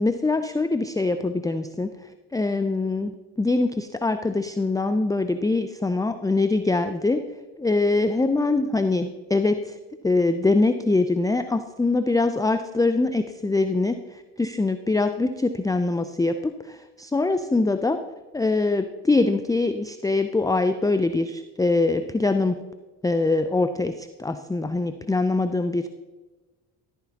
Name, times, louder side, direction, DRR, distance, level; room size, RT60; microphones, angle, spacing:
voice 1, 0.0-1.9 2.3-7.2 7.6-9.8 10.0-18.0 18.3-22.6 23.0-25.9, left 3 dB, 10° left, 9 dB, 0.5 m, -23 dB
13.0 x 9.4 x 2.9 m, 1.2 s
hypercardioid pair, 45°, 48 cm